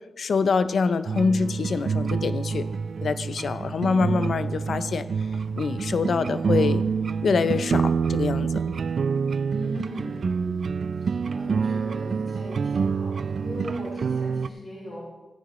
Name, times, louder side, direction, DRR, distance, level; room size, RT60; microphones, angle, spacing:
voice 1, 0.2-2.7 3.0-5.1 5.6-6.8 7.2-8.6, left 5 dB, 65° left, 13 dB, 0.5 m, -25 dB
sound 1, 1.1-14.5, right 5 dB, 60° right, 0.3 m, -27 dB
voice 2, 9.5-15.1, left 1 dB, 45° left, -8 dB, 4.1 m, -40 dB
15.5 x 9.8 x 3.1 m, 1.2 s
wide cardioid pair, 110°, 0 cm